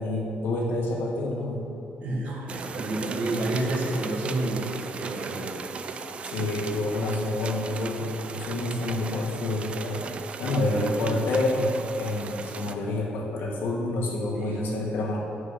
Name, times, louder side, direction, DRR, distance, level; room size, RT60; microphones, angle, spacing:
voice 1, 0.0-1.6 6.2-10.0 10.4-15.2, left 2 dB, 75° left, -1 dB, 1.6 m, -28 dB
voice 2, 2.0-5.6 10.4-10.8 14.4-14.6, right 2 dB, 50° right, -2 dB, 1.7 m, -30 dB
sound 1, 2.5-12.7, right 5 dB, 35° right, 0.4 m, -37 dB
8.8 x 6.8 x 5.6 m, 2.8 s
cardioid pair, 180°, 4 cm